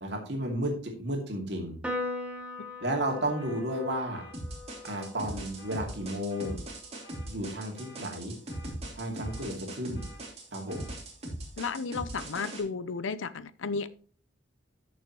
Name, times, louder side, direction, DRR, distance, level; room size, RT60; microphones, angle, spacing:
voice 1, 0.0-1.8 2.8-4.3 4.8-6.6 7.3-8.3 9.0-10.0 10.5-10.9, right 1 dB, 60° right, 2.5 m, -33 dB
Piano, 1.8-8.5, left 2 dB, 5° right, 1.4 m, -41 dB
sound 1, 3.4-3.6 4.1-4.4 4.8-5.1 5.6-5.8 6.3-6.6 7.0-7.3 7.8-8.0 8.5-8.8 9.2-9.5 9.9-10.2 10.7-10.9, equal, 50° left, 3.2 m, -52 dB
sound 2, 4.3-12.6, right 1 dB, 30° right, 2.8 m, -40 dB
voice 2, 11.6-13.9, left 4 dB, 85° left, 0.6 m, -33 dB
13.5 x 6.4 x 3.1 m
head